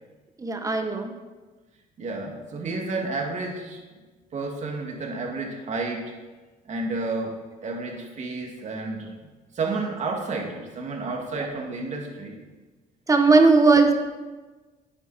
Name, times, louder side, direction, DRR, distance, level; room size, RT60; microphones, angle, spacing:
voice 1, 0.4-1.1 13.1-13.9, right 3 dB, 20° right, 5 dB, 1.3 m, -18 dB
voice 2, 2.0-3.8 4.3-6.2 6.7-9.1 9.5-12.4, right 3 dB, 45° right, 1 dB, 2.4 m, -31 dB
11.0 x 9.2 x 4.4 m, 1.3 s
cardioid pair, 110°, 17 cm